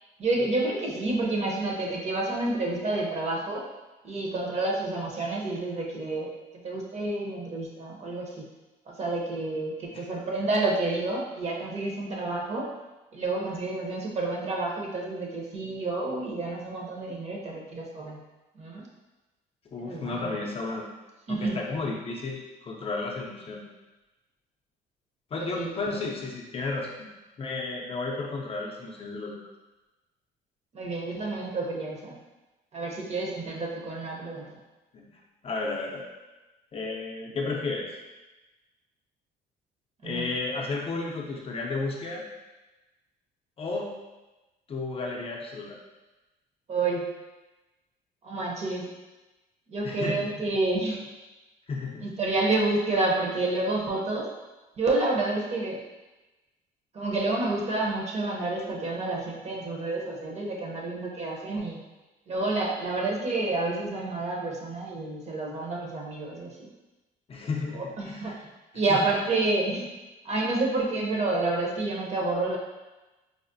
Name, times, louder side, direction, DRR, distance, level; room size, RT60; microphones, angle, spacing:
voice 1, 0.2-3.6 4.0-6.3 6.6-8.4 8.9-12.7 13.1-18.2 18.5-18.8 19.8-20.3 21.3-21.6 25.4-25.7 30.7-32.1 32.7-34.6 40.0-40.3 46.7-47.1 48.2-48.9 49.7-51.0 52.0-54.3 54.8-55.8 56.9-61.8 62.3-66.7 67.7-68.4 68.7-69.9 70.2-72.6, right 2 dB, 40° right, -2 dB, 0.7 m, -29 dB
voice 2, 19.7-20.9 21.3-23.6 25.3-27.1 27.4-29.4 34.9-35.0 35.4-36.0 36.7-37.9 40.0-42.2 43.6-43.9 44.7-45.8 49.8-50.3 51.7-52.2 67.3-68.4 68.9-69.1, left 3 dB, 35° left, -1 dB, 0.5 m, -33 dB
4.7 x 2.0 x 2.6 m, 1.1 s
cardioid pair, 110°, 17 cm